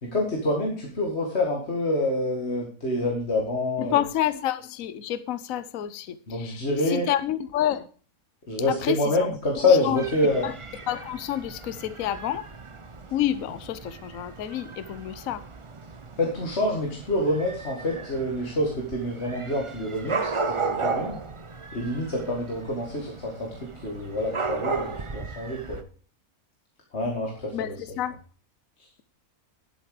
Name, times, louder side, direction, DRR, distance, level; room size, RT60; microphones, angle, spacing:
voice 1, 0.0-4.0 6.3-7.1 8.5-10.5 16.2-21.2 21.7-25.8 26.9-27.7, left 2 dB, 45° left, -1 dB, 2.3 m, -27 dB
voice 2, 3.8-7.9 8.7-9.3 9.6-10.0 10.4-10.5 10.9-12.4 13.1-15.4 27.5-28.2, left 12 dB, 65° left, 14 dB, 1.1 m, -29 dB
Dog / Cat, 9.9-25.8, right 4 dB, 30° right, 0.5 m, -35 dB
11.5 x 8.1 x 4.9 m, 0.39 s
omnidirectional pair, 1.6 m